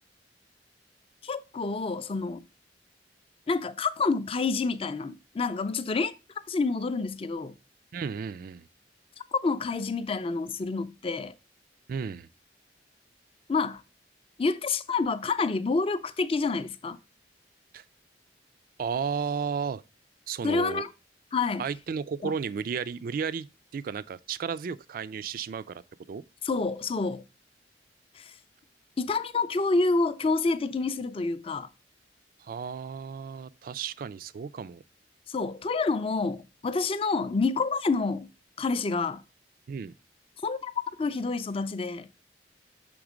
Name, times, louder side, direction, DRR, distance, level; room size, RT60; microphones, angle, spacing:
voice 1, 1.2-2.4 3.5-6.1 6.5-7.5 9.3-11.3 13.5-13.8 14.4-17.0 20.4-20.9 21.3-21.6 22.2-22.3 26.4-27.2 28.2-28.3 29.0-31.7 35.3-38.3 38.6-39.2 40.4-40.7 41.0-42.1, left 3 dB, 30° left, 0.4 m, -28 dB
voice 2, 7.9-8.6 11.9-12.3 17.7-17.8 18.8-19.8 20.3-20.8 21.6-25.8 26.1-26.2 32.4-34.8 39.7-39.9, right 6 dB, 50° right, 0.3 m, -33 dB
6.0 x 3.6 x 5.0 m
head